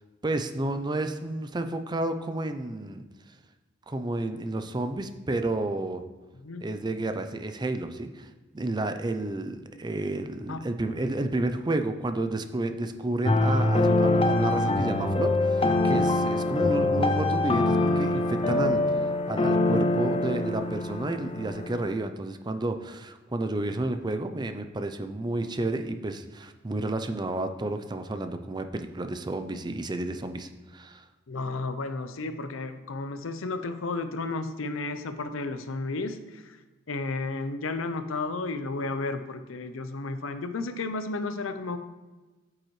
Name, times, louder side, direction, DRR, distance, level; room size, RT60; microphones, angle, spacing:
voice 1, 0.2-3.0 3.9-6.0 6.6-8.3 8.5-31.0, right 2 dB, 20° right, 8 dB, 0.5 m, -31 dB
sound 1, 13.2-21.9, left 2 dB, 30° left, 0.5 m, -24 dB
voice 2, 31.3-36.6 36.9-41.8, left 3 dB, 85° left, 9 dB, 0.7 m, -33 dB
8.8 x 7.5 x 3.2 m, 1.2 s
head